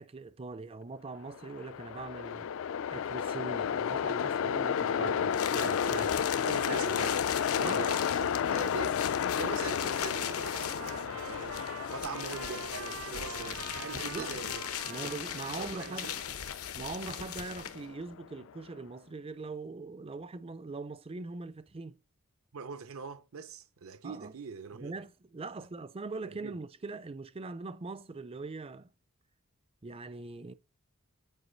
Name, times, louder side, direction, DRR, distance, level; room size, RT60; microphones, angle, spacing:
voice 1, 0.0-2.5 2.9-5.1 5.5-6.1 7.6-8.0 13.9-14.3 14.9-16.2 16.8-22.0 24.0-24.3 24.7-28.9 29.8-30.5, right 3 dB, 25° right, 0.4 m, -41 dB
Train, 1.3-18.5, left 8 dB, 60° left, 0.3 m, -33 dB
voice 2, 4.9-6.1 6.4-7.3 7.5-9.0 9.3-11.6 11.9-15.1 15.5-16.2 22.5-24.9 26.2-26.5, right 5 dB, 70° right, 0.6 m, -42 dB
sound 1, 5.3-17.9, left 10 dB, 85° left, 0.9 m, -39 dB
Trumpet, 9.8-16.3, right 5 dB, 85° right, 1.3 m, -46 dB
8.2 x 5.0 x 3.9 m
head